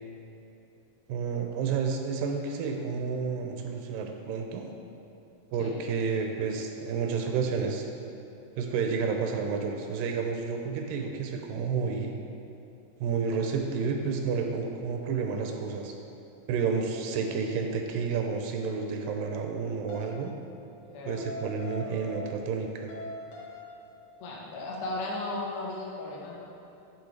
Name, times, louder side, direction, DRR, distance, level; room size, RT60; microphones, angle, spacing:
voice 1, 1.1-4.7 5.5-7.9 8.6-12.1 13.0-15.9 16.5-20.3 21.1-22.9, right 5 dB, 85° right, 3 dB, 2.1 m, -30 dB
sound 1, 19.9-20.2 21.2-22.6 22.9-23.8, left 2 dB, 70° left, 2.2 m, -41 dB
voice 2, 20.9-21.2 24.2-26.4, left 2 dB, 85° left, -3 dB, 1.2 m, -35 dB
9.5 x 3.9 x 3.2 m, 2.9 s
omnidirectional pair, 3.8 m